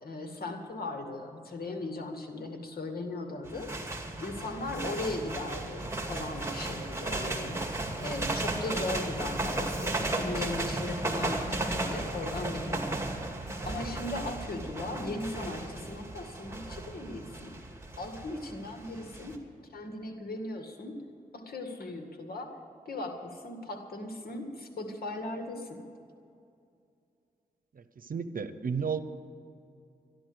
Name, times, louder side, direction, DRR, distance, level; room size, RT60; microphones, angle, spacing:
voice 1, 0.0-7.6 8.0-13.0 13.6-17.6 18.0-19.4 19.7-20.9 21.3-22.6 22.9-25.8, left 2 dB, 75° left, 4 dB, 2.0 m, -38 dB
sound 1, 3.4-19.4, right 2 dB, 15° right, 2.1 m, -35 dB
voice 2, 27.7-29.0, right 6 dB, 60° right, 12 dB, 0.9 m, -33 dB
13.5 x 10.5 x 7.9 m, 2.5 s
cardioid pair, 50°, 16 cm